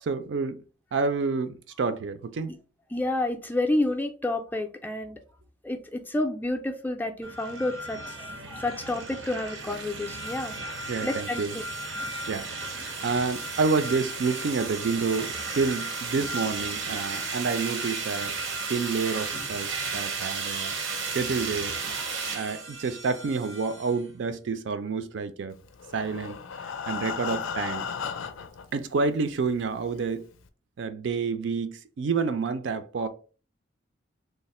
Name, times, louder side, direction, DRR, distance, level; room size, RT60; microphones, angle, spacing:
voice 1, 0.0-0.6 0.9-2.5 10.9-11.5 12.3-18.3 18.7-20.7 21.0-21.7 22.3-25.6 25.9-26.4 26.9-27.9 28.7-30.3 30.8-33.1, right 4 dB, 65° right, 0.4 m, -29 dB
voice 2, 2.9-5.2 5.6-11.6, left 2 dB, 10° left, 0.3 m, -30 dB
sound 1, 7.2-24.0, right 4 dB, 90° right, 0.8 m, -34 dB
Breathing, 25.7-28.7 29.4-29.5 29.9-30.0 30.4-30.5, left 6 dB, 90° left, 0.4 m, -34 dB
3.2 x 2.1 x 4.1 m
head